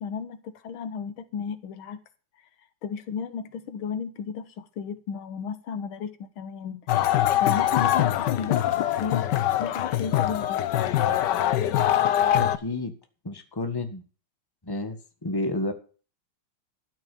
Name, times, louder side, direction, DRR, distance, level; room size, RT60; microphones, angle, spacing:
voice 1, 0.0-2.0 2.8-9.2 9.6-10.6, left 6 dB, 80° left, 1.9 m, -34 dB
sound 1, 6.9-12.6, left 11 dB, 65° left, 1.3 m, -23 dB
voice 2, 12.3-12.9 13.2-14.0 14.6-15.7, left 2 dB, 10° left, 1.4 m, -30 dB
13.0 x 6.5 x 8.4 m
omnidirectional pair, 2.3 m